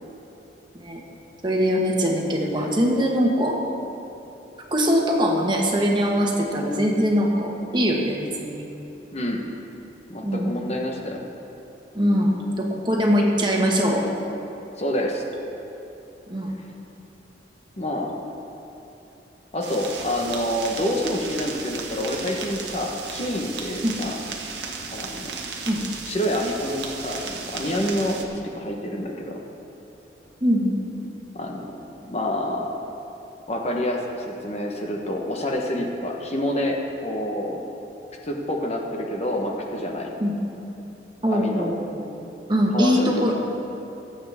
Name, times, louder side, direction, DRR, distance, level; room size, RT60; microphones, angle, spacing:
voice 1, 1.4-3.6 4.7-8.6 10.2-10.5 11.9-14.0 16.3-16.5 23.8-24.0 25.6-25.8 30.4-30.8 40.2-40.4 41.2-42.0 42.5-43.3, equal, 25° right, -1 dB, 1.4 m, -22 dB
voice 2, 9.1-9.4 10.1-11.2 14.8-15.2 17.8-18.1 19.5-24.2 24.9-25.3 26.1-29.4 31.3-32.7 33.5-36.8 37.0-37.6 38.2-40.1 41.3-41.7 42.7-43.3, left 1 dB, 35° left, 0 dB, 1.1 m, -27 dB
sound 1, 19.6-28.2, right 4 dB, 75° right, 1.4 m, -35 dB
23.0 x 8.3 x 3.6 m, 2.9 s
head